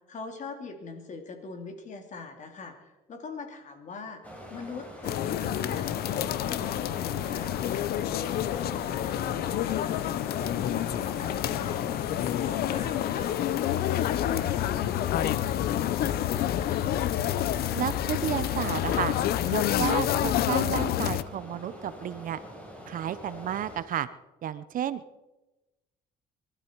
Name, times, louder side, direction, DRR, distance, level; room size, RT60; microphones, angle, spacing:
voice 1, 0.1-4.2 4.5-7.5 8.1-10.1 10.4-15.7 16.0-16.9, left 4 dB, 45° left, 5 dB, 3.1 m, -42 dB
sound 1, 4.2-23.8, equal, 10° left, 4.6 m, -44 dB
sound 2, 5.0-21.2, left 12 dB, 65° left, 0.7 m, -28 dB
voice 2, 17.7-19.1 19.4-22.4 22.9-24.1 24.4-25.0, right 10 dB, 55° right, 15 dB, 0.8 m, -32 dB
24.0 x 12.5 x 4.7 m, 1.0 s
cardioid pair, 110°, 17 cm